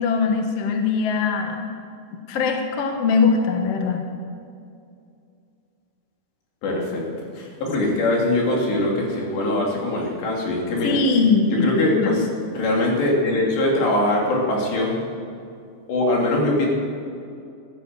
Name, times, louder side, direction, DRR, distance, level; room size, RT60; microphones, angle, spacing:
voice 1, 0.0-1.7 2.3-4.0 10.8-12.3, left 4 dB, 60° left, 3 dB, 1.7 m, -21 dB
voice 2, 6.6-11.0 11.5-12.3 12.5-15.0 15.9-16.7, left 1 dB, 75° left, -2 dB, 5.0 m, -22 dB
14.5 x 13.0 x 7.6 m, 2.4 s
omnidirectional pair, 5.0 m